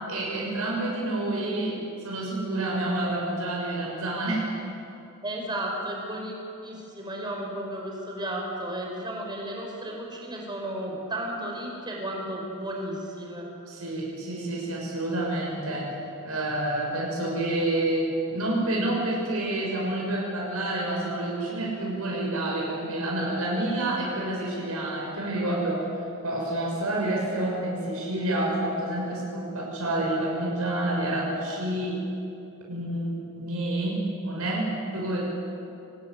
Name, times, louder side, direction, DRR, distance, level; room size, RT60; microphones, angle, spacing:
voice 1, 0.0-1.8 2.0-4.5 13.7-15.9 16.2-25.9 26.2-32.0 32.7-35.2, right 1 dB, 75° right, -3 dB, 6.4 m, -28 dB
voice 2, 5.2-6.3 6.6-13.5, right 1 dB, 20° right, 0 dB, 5.6 m, -33 dB
24.5 x 19.5 x 9.6 m, 2.8 s
head